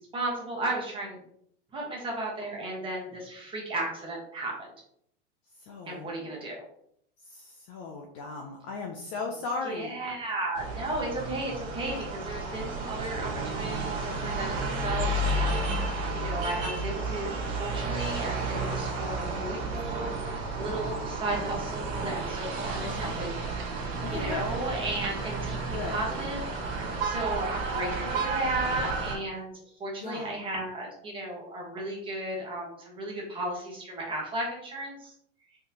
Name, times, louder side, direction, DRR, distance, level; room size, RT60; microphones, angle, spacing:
voice 1, 0.1-1.2 1.7-4.5 5.9-6.6 9.6-23.4 24.1-26.5 27.0-29.5 29.8-35.1, right 2 dB, 15° right, -3 dB, 1.1 m, -34 dB
voice 2, 5.7-6.1 7.2-9.9 22.8-23.2 24.1-24.4 25.7-26.0 30.0-30.3, left 4 dB, 25° left, 1 dB, 0.3 m, -36 dB
sound 1, 10.6-29.2, right 2 dB, 50° right, 1.6 m, -32 dB
4.1 x 3.1 x 2.7 m, 0.69 s
supercardioid pair, 150°, 36 cm